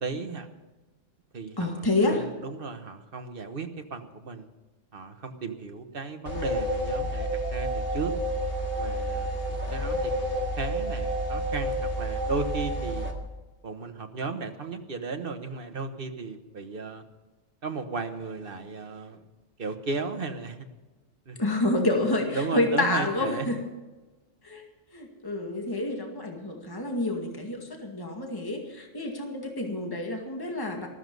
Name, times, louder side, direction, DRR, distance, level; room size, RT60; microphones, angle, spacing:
voice 1, 0.0-0.5 1.3-4.5 4.9-8.1 8.7-9.3 9.7-13.1 13.6-17.0 17.6-19.2 19.6-20.7 21.3-21.4 22.3-23.6, right 4 dB, 50° right, 6 dB, 1.5 m, -35 dB
voice 2, 1.6-2.2 21.4-23.6 24.4-24.6 24.9-30.9, left 2 dB, 20° left, 1 dB, 2.1 m, -28 dB
sound 1, 6.3-13.1, equal, 50° left, 2.2 m, -29 dB
14.0 x 14.0 x 5.4 m, 1.2 s
omnidirectional pair, 1.3 m